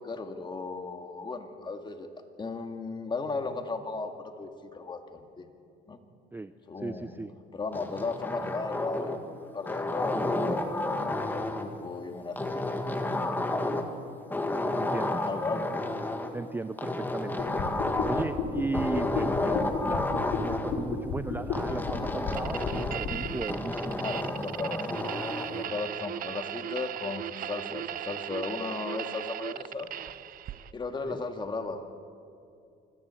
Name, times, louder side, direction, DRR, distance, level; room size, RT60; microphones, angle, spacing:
voice 1, 0.0-2.1 2.4-5.5 5.9-6.0 6.7-7.2 7.5-10.6 10.9-13.1 15.3-15.8 24.0-25.1 25.4-29.9 30.7-31.8, left 3 dB, 25° left, 5 dB, 2.1 m, -36 dB
voice 2, 6.3-7.3 14.8-15.2 16.3-17.3 18.0-24.1 31.0-31.2, right 3 dB, 10° right, 12 dB, 0.5 m, -36 dB
sound 1, 7.7-9.3 9.6-11.7 12.4-14.0 14.3-16.3 16.8-18.4 18.7-20.7 21.5-23.1 23.5-25.5, left 2 dB, 10° left, 1.9 m, -31 dB
sound 2, 17.4-23.3, left 5 dB, 70° left, 5.6 m, -33 dB
sound 3, 22.3-30.7, right 11 dB, 55° right, 0.8 m, -37 dB
25.0 x 14.5 x 8.4 m, 2.5 s
cardioid pair, 110°, 17 cm